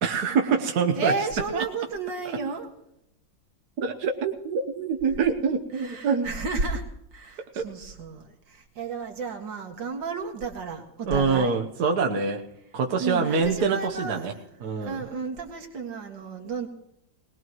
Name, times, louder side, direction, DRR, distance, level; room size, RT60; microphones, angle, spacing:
voice 1, 0.0-1.1 1.5-1.6 2.2-2.4 3.8-6.3 7.5-7.7 11.1-12.4 12.7-14.3 14.6-15.0, right 5 dB, 60° right, 3 dB, 1.5 m, -25 dB
voice 2, 1.0-2.7 5.8-6.8 7.1-11.6 13.0-14.5 14.8-16.7, right 4 dB, 75° right, 3 dB, 2.5 m, -32 dB
21.0 x 19.5 x 3.1 m, 0.78 s
omnidirectional pair, 2.0 m